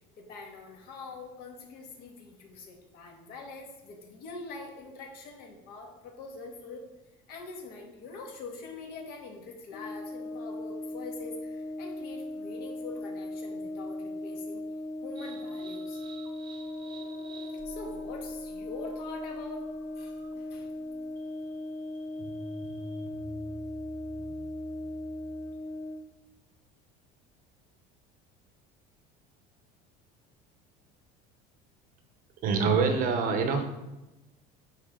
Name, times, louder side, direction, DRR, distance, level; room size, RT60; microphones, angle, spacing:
voice 1, 0.2-6.9 7.3-14.6 15.0-16.1 16.8-19.7 20.0-20.7, left 3 dB, 60° left, 0 dB, 1.8 m, -44 dB
Brass instrument, 9.7-26.1, left 1 dB, 85° left, 0.8 m, -38 dB
sound 1, 15.1-25.7, right 2 dB, 25° right, 0.8 m, -49 dB
voice 2, 32.4-33.6, right 5 dB, 50° right, 6 dB, 0.9 m, -25 dB
8.9 x 4.0 x 3.8 m, 1.0 s
cardioid pair, 140°, 18 cm